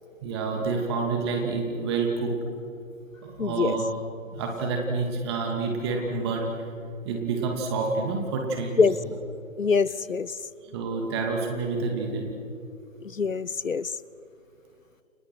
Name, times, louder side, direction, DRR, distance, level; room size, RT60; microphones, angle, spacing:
voice 1, 0.2-2.3 3.2-3.9 4.3-6.5 7.0-8.9 10.7-12.3, right 4 dB, 20° right, 1 dB, 2.4 m, -28 dB
voice 2, 3.4-3.8 8.8-9.0 9.6-10.3 13.0-13.9, left 5 dB, 80° left, 20 dB, 0.9 m, -24 dB
30.0 x 24.5 x 6.3 m, 2.6 s
figure-of-eight pair, 145°, 39 cm